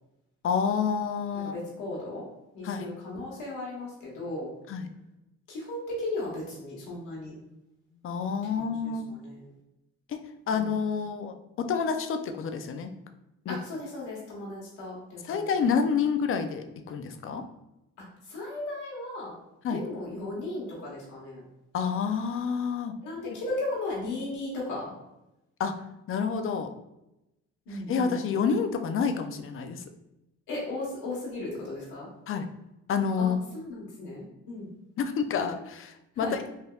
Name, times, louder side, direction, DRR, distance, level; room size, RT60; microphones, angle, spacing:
voice 1, 0.4-1.5 2.6-2.9 4.7-4.9 8.0-9.0 10.1-10.2 10.5-12.9 13.5-13.6 15.3-17.4 19.6-19.8 21.7-22.9 23.2-23.4 25.6-25.7 26.1-26.7 27.7-29.8 32.3-32.5 32.9-33.4 35.0-36.5, left 6 dB, 45° left, 7 dB, 0.4 m, -28 dB
voice 2, 1.4-2.2 2.5-4.5 5.5-7.3 8.6-8.9 9.2-9.5 10.5-10.7 13.5-15.6 18.3-19.3 19.7-21.4 23.0-24.9 27.7-28.2 30.5-32.1 33.2-34.7 36.1-36.4, left 2 dB, 90° left, -5 dB, 1.2 m, -36 dB
3.3 x 2.7 x 2.3 m, 0.91 s
cardioid pair, 90°, 30 cm